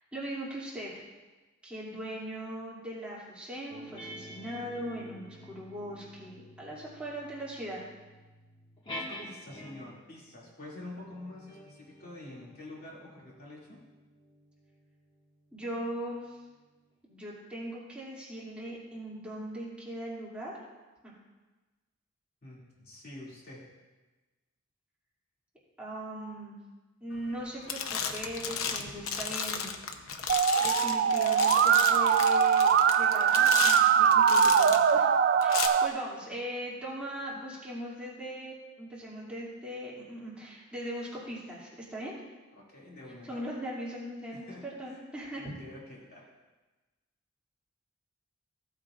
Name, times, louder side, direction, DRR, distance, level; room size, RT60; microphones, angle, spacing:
voice 1, 0.1-0.9 1.6-7.8 15.5-16.4 17.1-20.5 21.0-21.1 25.8-26.6 27.0-29.7 30.6-35.1 35.4-42.1 43.2-44.5 44.8-45.5, equal, 5° right, -8 dB, 2.6 m, -39 dB
sound 1, 3.7-10.1 10.8-15.8, left 1 dB, 25° left, 1.7 m, -48 dB
voice 2, 8.9-13.8 22.4-23.7 42.6-43.4 44.3-45.0 45.3-46.3, left 1 dB, 50° left, -5 dB, 2.5 m, -47 dB
sound 2, 27.2-27.4 27.7-34.9 35.4-35.7, left 6 dB, 80° left, 0.8 m, -34 dB
Musical instrument, 30.3-35.9, right 7 dB, 50° right, 0.4 m, -22 dB
15.5 x 8.6 x 2.5 m, 1.2 s
head